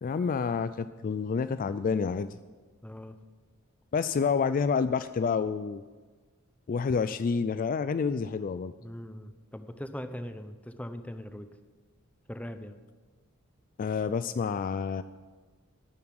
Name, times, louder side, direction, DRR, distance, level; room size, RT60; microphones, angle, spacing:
voice 1, 0.0-2.4 3.9-5.8 6.7-8.7 13.8-15.0, left 5 dB, 40° left, 13 dB, 0.3 m, -28 dB
voice 2, 2.8-3.2 8.8-11.5 12.3-12.8, equal, 5° left, 9 dB, 0.7 m, -40 dB
12.0 x 7.3 x 9.5 m, 1.4 s
head